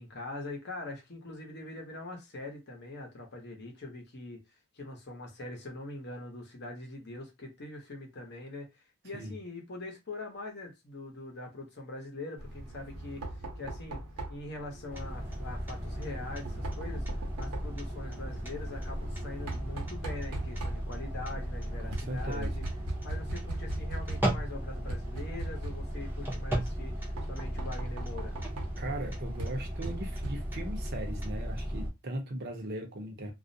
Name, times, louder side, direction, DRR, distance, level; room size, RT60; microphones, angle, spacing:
voice 1, 0.0-4.4 4.7-14.0 14.3-22.6 23.0-28.4, left 2 dB, 50° left, 0.8 m, -43 dB
Knock, 12.4-30.8, right 2 dB, 85° right, 0.8 m, -41 dB
sound 1, 14.9-31.9, equal, 10° right, 0.6 m, -36 dB
voice 2, 21.9-22.5 28.8-33.3, right 1 dB, 45° right, 0.7 m, -38 dB
2.4 x 2.0 x 2.6 m
head